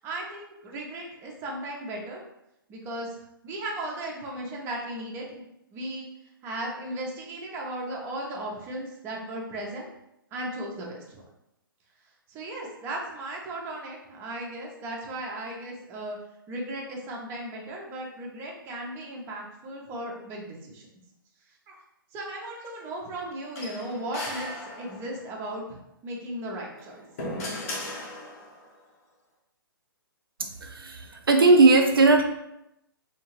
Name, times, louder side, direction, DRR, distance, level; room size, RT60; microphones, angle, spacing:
voice 1, 0.0-2.2 2.7-3.2 3.4-5.4 5.7-6.1 6.4-9.9 10.3-11.2 12.3-16.2 16.5-20.9 21.7-21.8 22.1-27.1, right 1 dB, 20° right, -2 dB, 0.5 m, -36 dB
sound 1, 23.6-25.3 26.6-28.7, left 1 dB, 40° left, 0.7 m, -37 dB
voice 2, 30.4-32.2, right 3 dB, 75° right, 4 dB, 0.4 m, -18 dB
2.6 x 2.4 x 2.9 m, 0.83 s
figure-of-eight pair, 125°, 12 cm